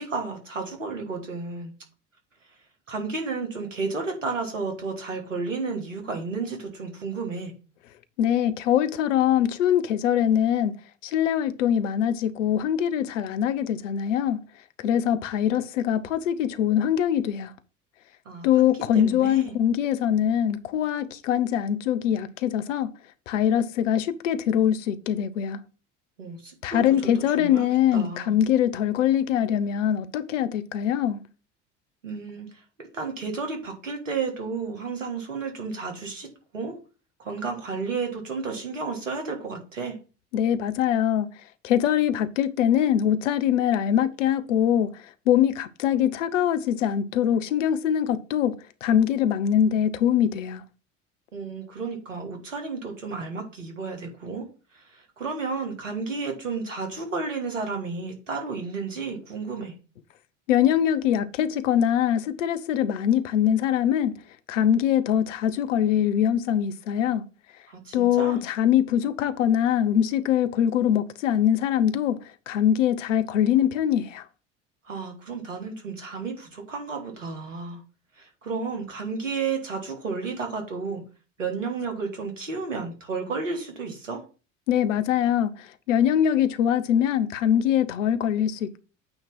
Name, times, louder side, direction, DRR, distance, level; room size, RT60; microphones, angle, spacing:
voice 1, 0.0-1.7 2.9-7.5 18.2-19.6 26.2-28.4 32.0-36.3 36.5-36.8 37.2-40.0 51.3-59.7 67.7-68.4 74.8-77.8 78.2-81.0 81.4-84.2, right 4 dB, 90° right, 1.6 m, -32 dB
voice 2, 8.2-10.7 11.0-14.4 14.8-17.5 18.4-22.9 23.3-25.6 26.6-31.2 40.3-41.3 41.6-44.9 45.3-48.6 48.8-50.6 60.5-64.2 64.5-67.2 67.9-72.2 72.5-74.2 84.7-88.8, left 10 dB, 75° left, 0.7 m, -23 dB
8.9 x 3.0 x 5.6 m
hypercardioid pair, 65°, 37 cm